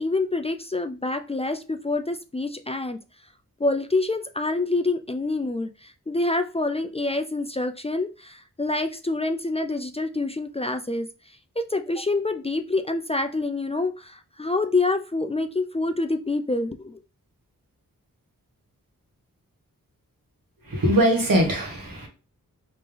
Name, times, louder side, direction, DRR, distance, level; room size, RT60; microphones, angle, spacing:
voice 1, 0.0-3.0 3.6-11.1 11.6-17.0, left 2 dB, 20° left, 0.4 m, -26 dB
voice 2, 20.6-22.1, right 1 dB, 80° right, 1.5 m, -21 dB
3.4 x 3.0 x 3.5 m
cardioid pair, 50°, 34 cm